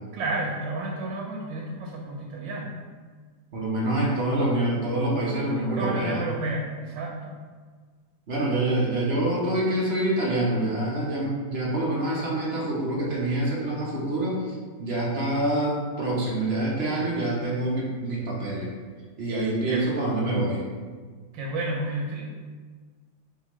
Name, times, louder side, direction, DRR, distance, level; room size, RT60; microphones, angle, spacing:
voice 1, 0.1-2.8 5.5-7.4 19.7-19.9 21.3-22.3, right 2 dB, 85° right, -2 dB, 1.4 m, -31 dB
voice 2, 3.5-6.2 8.3-18.7 19.2-20.6, right 1 dB, 50° right, -4 dB, 0.8 m, -26 dB
4.7 x 3.6 x 3.0 m, 1.5 s
omnidirectional pair, 2.0 m